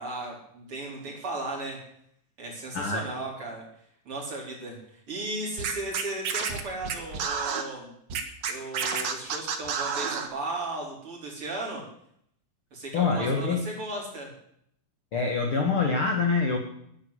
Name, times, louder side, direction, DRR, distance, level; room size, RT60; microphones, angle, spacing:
voice 1, 0.0-1.8 2.4-3.6 4.0-7.9 8.5-11.8 12.7-14.3, right 2 dB, 30° right, -2 dB, 4.8 m, -36 dB
voice 2, 2.7-3.1 12.9-13.6 15.1-16.6, left 4 dB, 55° left, 3 dB, 1.5 m, -25 dB
Scratching (performance technique), 5.6-7.6 8.1-10.3, right 6 dB, 55° right, 1.9 m, -29 dB
12.0 x 10.5 x 8.1 m, 0.70 s
omnidirectional pair, 4.9 m